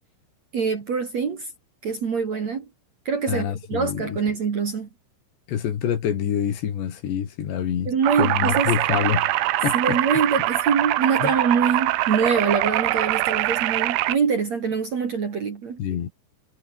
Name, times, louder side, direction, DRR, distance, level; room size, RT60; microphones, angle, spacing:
voice 1, 0.5-1.5 1.8-2.7 3.0-4.9 7.9-8.7 9.7-15.8, right 6 dB, 45° right, 2.9 m, -24 dB
voice 2, 3.3-4.2 5.5-7.9 8.2-9.3 9.6-10.2 11.2-11.3 15.8-16.1, left 9 dB, 65° left, 4.7 m, -26 dB
sound 1, 8.0-14.2, right 16 dB, 75° right, 3.2 m, -23 dB
omnidirectional pair, 5.7 m